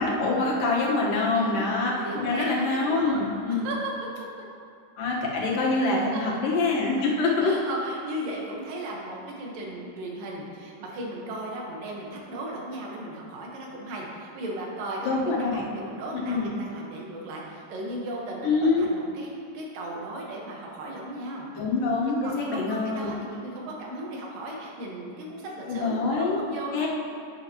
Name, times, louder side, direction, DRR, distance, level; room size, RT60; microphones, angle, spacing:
voice 1, 0.0-3.7 5.0-7.5 15.0-15.6 16.3-16.5 18.4-18.9 21.6-23.1 25.7-26.4 26.7-26.9, left 3 dB, 85° left, -4 dB, 3.0 m, -25 dB
voice 2, 1.3-1.7 2.0-3.2 3.5-3.9 4.2-4.4 6.1-6.2 7.0-7.1 7.4-21.5 22.2-26.9, right 1 dB, 85° right, -2 dB, 3.0 m, -36 dB
11.0 x 8.5 x 3.0 m, 2.4 s
omnidirectional pair, 3.8 m